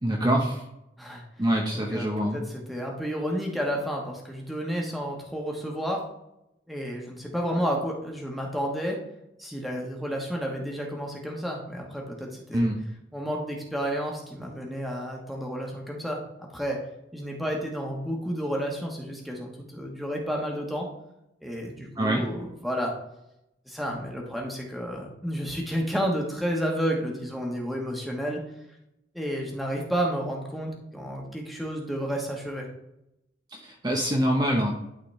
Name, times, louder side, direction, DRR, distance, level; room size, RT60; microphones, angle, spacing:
voice 1, 0.0-0.6 1.4-2.4 12.5-12.8 22.0-22.2 33.5-34.7, equal, 25° right, 0 dB, 0.8 m, -25 dB
voice 2, 1.7-6.0 6.7-9.0 9.4-12.7 13.1-16.8 17.1-20.9 21.4-22.9 23.7-28.4 29.1-32.7, equal, ahead, -1 dB, 1.2 m, -31 dB
11.5 x 4.1 x 3.2 m, 0.86 s
head